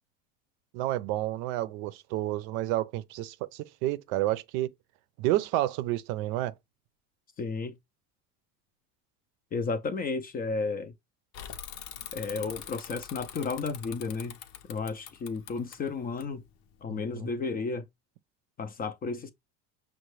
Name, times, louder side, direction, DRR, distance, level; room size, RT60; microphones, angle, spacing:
voice 1, 0.7-4.7 5.2-6.5 16.9-17.3, right 15 dB, 75° right, 0.5 m, -30 dB
voice 2, 7.4-7.7 9.5-10.9 12.1-14.4 14.7-16.4 16.8-17.8 18.6-19.3, left 4 dB, 25° left, 0.3 m, -33 dB
Bicycle / Mechanisms, 11.3-16.8, left 10 dB, 70° left, 0.7 m, -44 dB
5.6 x 2.2 x 3.1 m
supercardioid pair, 110°, 41 cm